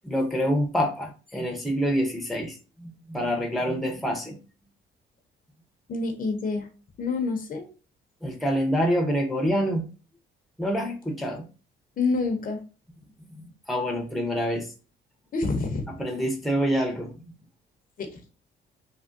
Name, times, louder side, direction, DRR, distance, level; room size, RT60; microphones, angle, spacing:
voice 1, 0.0-4.4 8.2-9.9 10.6-11.5 13.4-14.7 16.0-17.3, equal, ahead, 2 dB, 0.7 m, -26 dB
voice 2, 5.9-6.7 7.0-7.7 12.0-12.6 15.3-15.9 18.0-18.2, left 3 dB, 45° left, 5 dB, 0.7 m, -27 dB
3.4 x 2.1 x 2.5 m, 0.35 s
cardioid pair, 90°, 20 cm